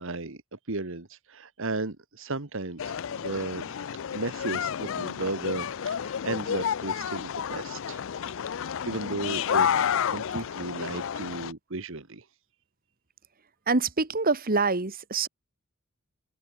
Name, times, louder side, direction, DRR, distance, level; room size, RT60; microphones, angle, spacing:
voice 1, 0.0-3.7 4.1-8.5 8.8-12.3, right 2 dB, 65° right, 1.7 m, -35 dB
sound 1, 2.8-11.5, left 8 dB, 65° left, 0.5 m, -30 dB
voice 2, 13.7-15.3, right 3 dB, 45° right, 1.8 m, -25 dB
open air
head